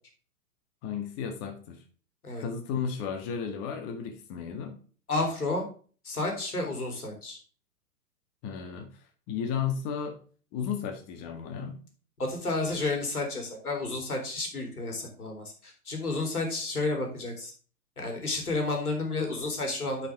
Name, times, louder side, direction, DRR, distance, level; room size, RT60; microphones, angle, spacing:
voice 1, 0.8-1.8 2.4-4.8 8.4-8.9 9.3-10.2 10.5-11.8, left 7 dB, 30° left, 5 dB, 1.7 m, -33 dB
voice 2, 5.1-5.6 6.0-7.4 12.2-17.5 18.0-20.1, left 2 dB, 75° left, 2 dB, 3.4 m, -31 dB
10.0 x 5.7 x 3.6 m, 0.40 s
figure-of-eight pair, 110°, 45 cm